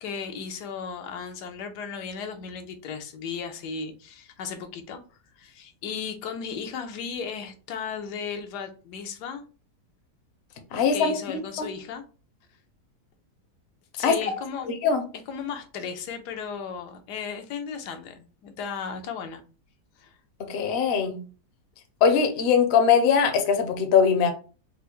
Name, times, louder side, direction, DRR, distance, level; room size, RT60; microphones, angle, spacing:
voice 1, 0.0-5.0 5.4-9.4 10.7-12.0 14.0-14.7 15.3-19.4 20.0-20.2, left 6 dB, 90° left, 1.2 m, -35 dB
voice 2, 10.7-11.2 11.6-11.7 14.0-14.1 14.7-15.0 20.4-21.2 22.0-24.3, left 6 dB, 60° left, 0.7 m, -21 dB
4.3 x 2.0 x 3.0 m
omnidirectional pair, 1.7 m